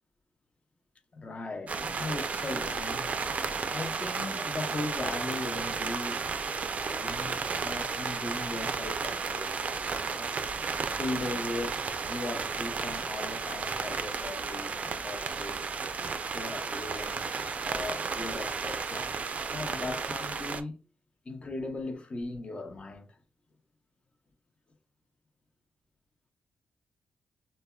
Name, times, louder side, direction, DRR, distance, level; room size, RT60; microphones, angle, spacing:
voice 1, 1.1-3.1 3.7-9.5 10.0-10.3 10.8-11.8 12.1-15.7 16.3-20.7 21.3-23.1, left 2 dB, 40° left, 0.5 m, -38 dB
sound 1, 1.7-20.6, right 5 dB, 50° right, 0.3 m, -33 dB
3.2 x 2.1 x 2.2 m
cardioid pair, 70°, 3 cm